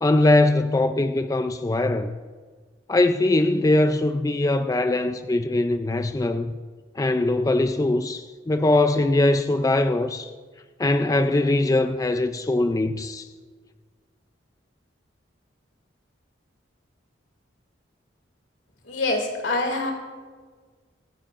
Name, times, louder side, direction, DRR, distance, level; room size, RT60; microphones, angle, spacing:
voice 1, 0.0-2.2 2.9-6.5 7.0-10.3 10.8-13.3, left 2 dB, 20° left, 0.3 m, -21 dB
voice 2, 18.8-19.9, left 2 dB, 80° left, 2.1 m, -25 dB
25.0 x 10.0 x 2.5 m
head